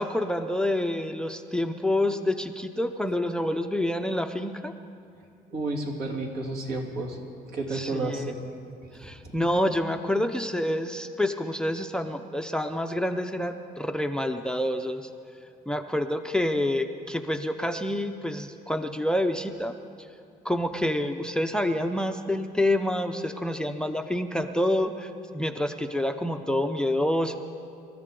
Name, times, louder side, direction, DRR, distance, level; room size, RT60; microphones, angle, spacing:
voice 1, 0.0-4.7 7.7-8.3 8.9-15.1 15.7-19.7 20.4-27.4, left 1 dB, 5° left, 8 dB, 0.6 m, -27 dB
voice 2, 5.5-7.2 7.5-8.4 8.9-9.1, right 2 dB, 65° right, -1 dB, 3.0 m, -31 dB
27.0 x 13.5 x 3.8 m, 2.5 s
cardioid pair, 110°, 17 cm